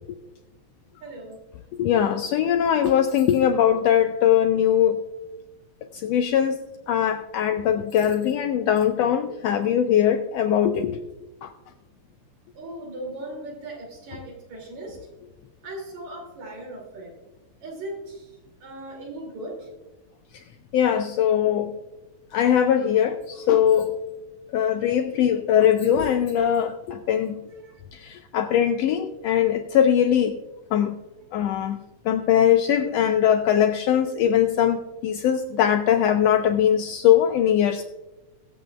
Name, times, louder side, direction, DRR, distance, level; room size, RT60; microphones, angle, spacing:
voice 1, 1.0-1.4 12.6-15.0 15.6-17.1 17.6-18.3 18.6-19.7 21.3-21.4 27.6-27.7, right 1 dB, 70° right, 4.0 m, -38 dB
voice 2, 1.7-5.0 5.9-6.6 6.9-11.0 11.4-11.5 20.7-21.7 22.3-23.9 24.5-27.4 27.9-30.4 30.7-30.9 31.3-31.8 32.1-37.8, left 9 dB, 80° left, 1.5 m, -21 dB
21.5 x 7.9 x 2.3 m
omnidirectional pair, 3.3 m